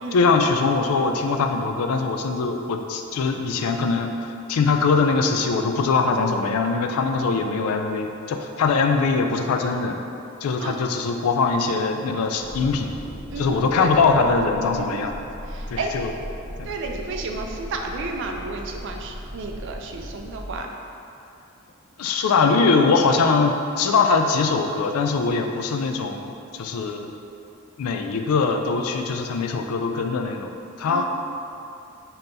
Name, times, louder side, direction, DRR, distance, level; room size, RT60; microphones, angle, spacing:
voice 1, 0.1-10.0 10.4-12.9 13.4-15.1 15.7-16.1 16.6-16.7 22.0-27.1 27.8-30.5 30.8-31.0, left 4 dB, 85° left, 5 dB, 0.3 m, -22 dB
sound 1, 12.3-20.6, equal, 40° left, 0.6 m, -38 dB
voice 2, 13.3-13.9 14.8-14.9 15.5-16.2 16.6-20.7 30.9-31.0, right 3 dB, 55° right, 2 dB, 0.4 m, -32 dB
5.4 x 2.9 x 2.6 m, 2.7 s
head